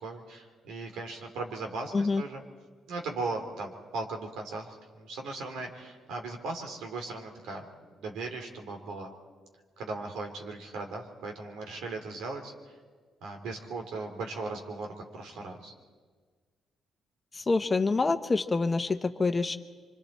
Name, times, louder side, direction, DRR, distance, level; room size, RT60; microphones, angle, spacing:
voice 1, 0.0-2.4 2.9-7.6 8.0-9.1 9.8-12.5 13.2-15.7, right 3 dB, 85° right, 3 dB, 3.2 m, -38 dB
voice 2, 17.4-19.6, left 3 dB, 25° left, 8 dB, 1.1 m, -26 dB
25.5 x 25.5 x 4.4 m, 1.5 s
cardioid pair, 90°, 0 cm